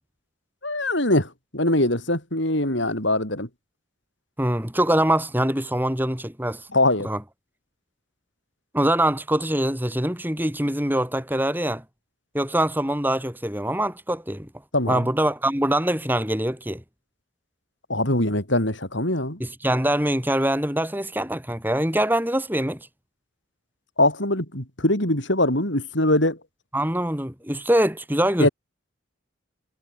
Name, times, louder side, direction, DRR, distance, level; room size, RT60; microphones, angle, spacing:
voice 1, 0.6-3.5 6.7-7.1 14.7-15.1 17.9-19.4 24.0-26.4 28.4-28.5, left 1 dB, 65° left, 7.3 m, -22 dB
voice 2, 4.4-6.7 7.0-7.2 8.7-11.8 12.3-14.5 14.9-16.8 19.4-22.8 26.7-28.5, right 1 dB, 10° right, 5.5 m, -23 dB
head